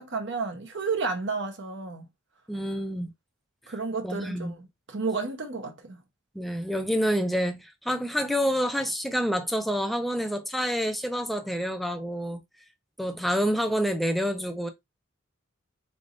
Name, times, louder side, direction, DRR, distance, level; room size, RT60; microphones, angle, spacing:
voice 1, 0.0-2.1 3.7-6.0, right 4 dB, 55° right, 0.9 m, -32 dB
voice 2, 2.5-3.1 4.0-4.5 6.3-12.4 13.0-14.7, equal, ahead, 0.5 m, -28 dB
4.1 x 3.4 x 2.5 m
head